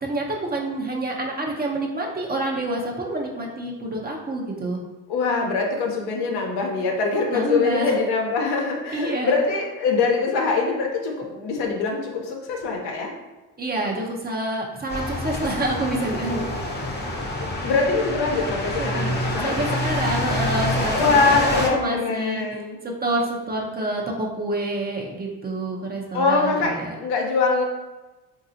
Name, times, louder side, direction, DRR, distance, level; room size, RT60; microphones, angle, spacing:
voice 1, 0.0-4.8 7.3-8.0 8.9-9.4 13.6-16.5 18.8-19.1 19.4-22.5 22.8-27.0, right 2 dB, 25° right, -1 dB, 0.7 m, -27 dB
voice 2, 5.1-13.1 17.3-19.8 20.9-22.8 26.1-27.7, left 4 dB, 75° left, 1 dB, 0.8 m, -23 dB
sound 1, 14.9-21.7, left 1 dB, 25° left, 0.7 m, -27 dB
4.0 x 2.6 x 2.7 m, 1.1 s
cardioid pair, 90°, 40 cm